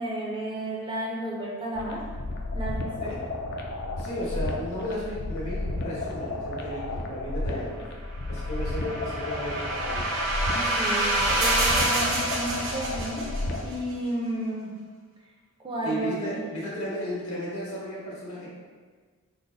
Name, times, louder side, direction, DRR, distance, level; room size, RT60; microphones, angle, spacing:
voice 1, 0.0-2.0 2.5-3.1 10.5-13.3 13.6-14.7 15.6-16.4, right 1 dB, 20° right, -3 dB, 0.5 m, -32 dB
sound 1, 1.7-13.8, left 2 dB, 45° left, 0.4 m, -33 dB
voice 2, 4.0-7.8 8.3-10.0 15.8-18.5, equal, 75° left, -7 dB, 1.3 m, -34 dB
sound 2, 8.3-13.6, right 1 dB, 55° right, 0.7 m, -27 dB
3.9 x 2.0 x 3.8 m, 1.5 s
head